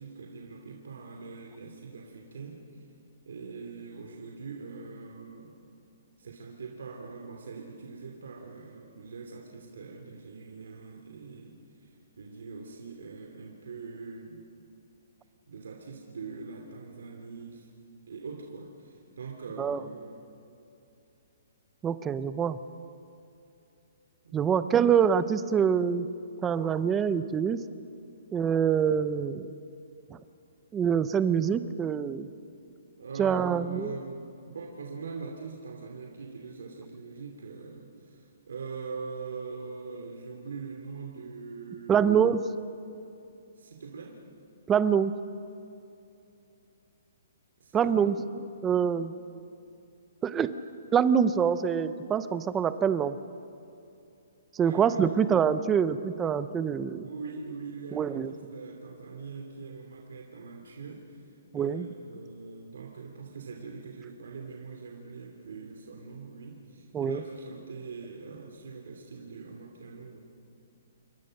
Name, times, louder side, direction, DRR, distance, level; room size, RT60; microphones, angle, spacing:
voice 1, 0.0-2.9 3.2-5.6 6.2-14.5 15.5-17.7 18.1-20.3 24.2-24.6 33.0-42.1 43.5-44.2 47.6-48.1 54.6-55.2 56.5-70.2, right 4 dB, 75° right, 1 dB, 2.8 m, -43 dB
voice 2, 21.8-22.6 24.3-26.1 26.4-27.6 28.3-29.5 30.1-30.2 30.7-32.3 33.2-33.9 41.9-42.4 44.7-45.1 47.7-49.1 50.2-50.5 50.9-53.2 54.5-57.0 57.9-58.3 61.5-61.9 66.9-67.2, right 7 dB, 10° right, 13 dB, 0.5 m, -25 dB
28.0 x 23.5 x 6.5 m, 2.7 s
hypercardioid pair, 180°, 0 cm